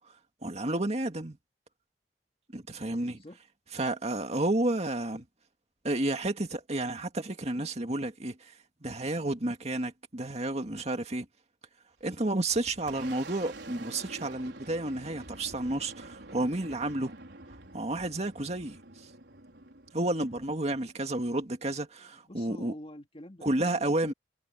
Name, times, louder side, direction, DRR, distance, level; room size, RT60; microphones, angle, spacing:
voice 1, 0.4-1.4 2.5-3.2 3.7-5.3 5.8-11.3 12.0-17.1 17.7-18.8 19.9-22.7 23.4-24.1, right 2 dB, 40° right, 2.1 m, -31 dB
Boom, 12.0-21.4, right 2 dB, 80° right, 4.8 m, -48 dB
voice 2, 22.0-24.1, left 1 dB, 30° left, 2.7 m, -48 dB
head